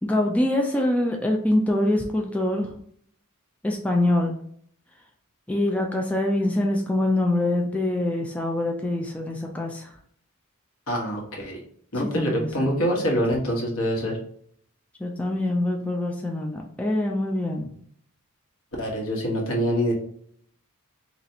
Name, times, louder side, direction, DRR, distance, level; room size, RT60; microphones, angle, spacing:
voice 1, 0.0-2.7 3.6-4.4 5.5-9.9 12.1-12.7 13.0-13.1 15.0-17.7, left 1 dB, 5° left, 1 dB, 0.4 m, -24 dB
voice 2, 10.9-11.6 11.9-14.2 18.8-19.9, equal, 70° left, -2 dB, 1.3 m, -25 dB
4.1 x 3.0 x 2.8 m, 0.63 s
head